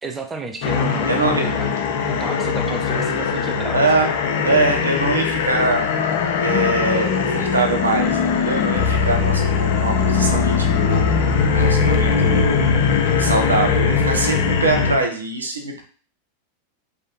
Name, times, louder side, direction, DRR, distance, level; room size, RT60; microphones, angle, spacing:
voice 1, 0.0-1.7 2.1-3.8, right 3 dB, 15° right, 4 dB, 0.5 m, -32 dB
sound 1, 0.6-15.0, left 5 dB, 50° left, 0.5 m, -20 dB
voice 2, 1.1-1.5 3.7-4.1 4.4-5.8 6.4-11.1 11.4-12.7 13.2-15.8, right 2 dB, 75° right, 2 dB, 0.7 m, -22 dB
3.3 x 2.6 x 3.8 m, 0.43 s
figure-of-eight pair, 90°, 0 cm